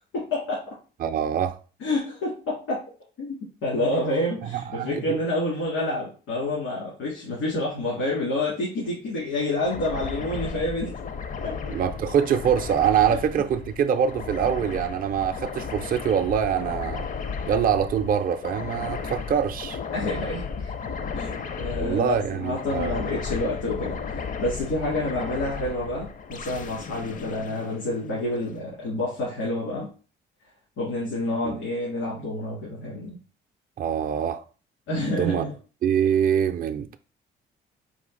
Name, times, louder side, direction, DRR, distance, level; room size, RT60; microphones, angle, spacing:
voice 1, 0.1-0.6 1.8-2.8 3.2-10.9 11.4-11.6 13.1-13.2 19.9-20.7 21.1-29.9 30.8-33.2 34.9-35.5, left 1 dB, 85° left, 2.0 m, -28 dB
voice 2, 1.0-1.6 4.5-5.2 11.7-17.1 17.5-19.8 21.7-23.0 31.4-31.6 33.8-34.4 35.2-35.4 35.8-37.0, right 8 dB, 45° right, 0.4 m, -24 dB
sound 1, 9.6-28.4, left 5 dB, 40° left, 0.5 m, -34 dB
4.2 x 2.8 x 3.7 m
cardioid pair, 90°, 20 cm